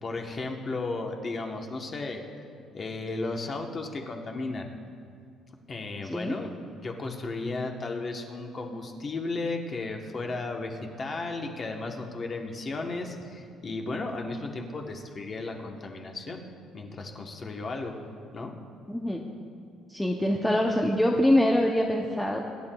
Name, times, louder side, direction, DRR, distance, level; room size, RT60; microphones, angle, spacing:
voice 1, 0.0-2.2 2.7-4.7 5.7-16.4 16.7-17.9 18.3-18.5, left 3 dB, 25° left, 2 dB, 0.9 m, -34 dB
voice 2, 6.0-6.4 18.9-19.2 19.9-22.4, left 1 dB, 5° left, 0 dB, 0.5 m, -24 dB
24.5 x 10.5 x 2.2 m, 2.4 s
cardioid pair, 180°, 0 cm